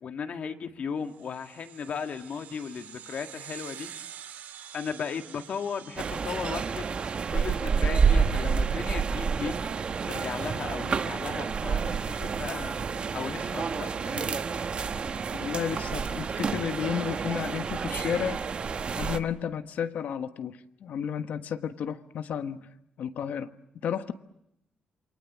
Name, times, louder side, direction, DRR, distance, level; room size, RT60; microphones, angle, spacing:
voice 1, 0.0-3.9 4.7-6.9 7.3-9.6 10.1-12.8 13.1-14.4, left 6 dB, 55° left, 7 dB, 1.8 m, -36 dB
sound 1, 1.1-8.0, right 9 dB, 85° right, 2.0 m, -47 dB
sound 2, 6.0-19.2, right 5 dB, 40° right, 1.3 m, -29 dB
voice 2, 15.3-18.4 18.9-22.7 23.0-23.5 23.8-24.1, left 8 dB, 70° left, 9 dB, 1.4 m, -32 dB
28.0 x 24.5 x 7.4 m, 0.79 s
wide cardioid pair, 145°, 3 cm